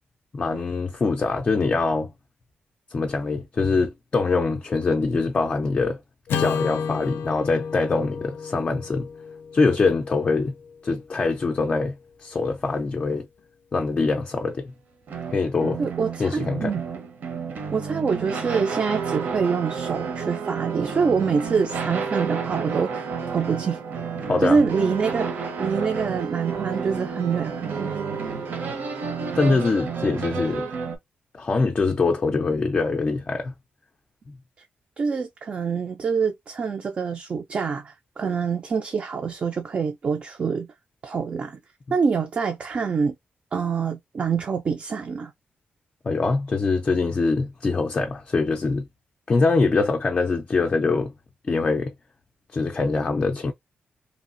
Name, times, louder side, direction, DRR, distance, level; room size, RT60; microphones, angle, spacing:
voice 1, 0.3-2.1 2.9-6.0 6.3-9.1 9.5-10.5 10.8-12.0 12.2-13.3 13.7-14.7 15.3-15.8 16.2-16.7 24.3-24.6 29.3-30.7 31.3-33.5 46.0-48.8 49.3-51.1 51.5-51.9 52.5-53.5, left 3 dB, 30° left, 0.4 m, -23 dB
Acoustic guitar / Strum, 6.3-10.7, left 6 dB, 90° left, 0.4 m, -31 dB
sound 1, 15.1-31.0, right 5 dB, 60° right, 0.8 m, -32 dB
voice 2, 15.8-16.8 17.7-23.8 24.4-28.0 29.5-29.6 35.0-40.7 41.0-41.6 41.9-43.1 43.5-45.3, right 5 dB, 35° right, 0.4 m, -25 dB
sound 2, 18.7-30.7, right 5 dB, 85° right, 0.9 m, -36 dB
3.0 x 2.4 x 2.5 m
wide cardioid pair, 160°, 4 cm